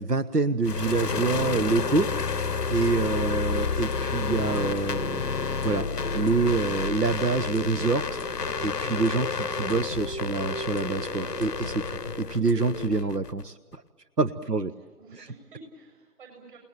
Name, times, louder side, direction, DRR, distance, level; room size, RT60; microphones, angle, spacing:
voice 1, 0.0-2.1 2.7-5.9 6.1-8.2 8.6-13.8 14.2-14.7, right 3 dB, 85° right, 11 dB, 1.1 m, -26 dB
sound 1, 0.6-13.4, left 5 dB, 85° left, 0.8 m, -31 dB
sound 2, 1.1-13.1, left 1 dB, 30° left, 0.8 m, -37 dB
voice 2, 14.5-16.6, right 3 dB, 30° right, 3 dB, 7.5 m, -50 dB
28.5 x 20.0 x 9.2 m, 1.4 s
figure-of-eight pair, 150°, 47 cm